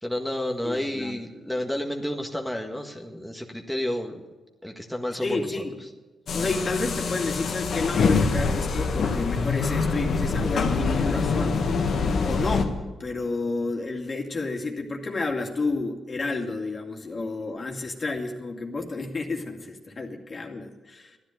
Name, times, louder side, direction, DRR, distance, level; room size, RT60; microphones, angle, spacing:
voice 1, 0.0-4.2 4.6-5.5, left 1 dB, ahead, 2 dB, 1.6 m, -30 dB
voice 2, 0.6-1.2 5.2-5.8 6.3-11.7 12.2-21.2, left 3 dB, 45° left, 2 dB, 2.4 m, -30 dB
sound 1, 6.3-12.6, left 4 dB, 65° left, 1.6 m, -25 dB
13.0 x 10.5 x 9.2 m, 1.2 s
supercardioid pair, 60°, 0 cm